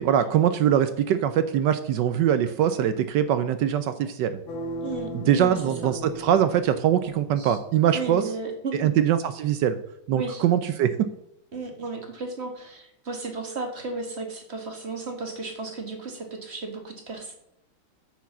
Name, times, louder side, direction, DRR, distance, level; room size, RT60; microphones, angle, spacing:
voice 1, 0.0-4.4 5.1-8.2 8.7-9.8 10.1-11.1, right 10 dB, 75° right, 11 dB, 1.1 m, -22 dB
sound 1, 4.5-7.5, equal, 75° left, 2.1 m, -37 dB
voice 2, 4.8-5.9 7.4-7.6 7.9-8.7 10.2-10.4 11.5-17.3, right 3 dB, 35° right, 3 dB, 1.8 m, -34 dB
9.2 x 4.6 x 7.3 m, 0.76 s
omnidirectional pair, 2.3 m